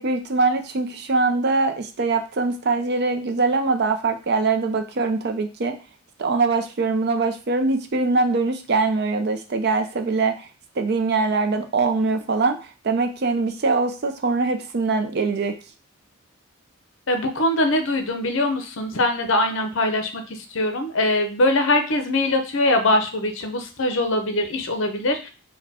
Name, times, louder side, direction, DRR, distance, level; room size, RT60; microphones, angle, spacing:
voice 1, 0.0-5.8 6.2-10.5 10.8-15.5, right 3 dB, 50° right, 7 dB, 0.5 m, -22 dB
voice 2, 17.1-25.3, left 1 dB, 60° left, 6 dB, 0.7 m, -22 dB
4.1 x 2.2 x 4.2 m, 0.33 s
head